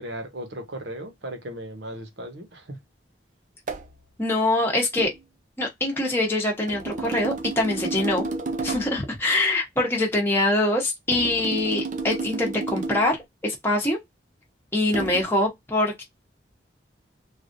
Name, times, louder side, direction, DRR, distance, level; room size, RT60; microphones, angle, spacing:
voice 1, 0.0-2.8, right 1 dB, 70° right, 0.9 m, -36 dB
sound 1, 3.7-3.9 5.0-5.2 6.7-9.0 11.1-13.2 14.9-15.2, right 3 dB, 45° right, 0.6 m, -31 dB
voice 2, 4.2-5.1 5.6-8.3 8.6-13.2 13.4-14.0 14.7-16.0, left 2 dB, 15° left, 0.9 m, -24 dB
3.3 x 2.4 x 2.5 m
head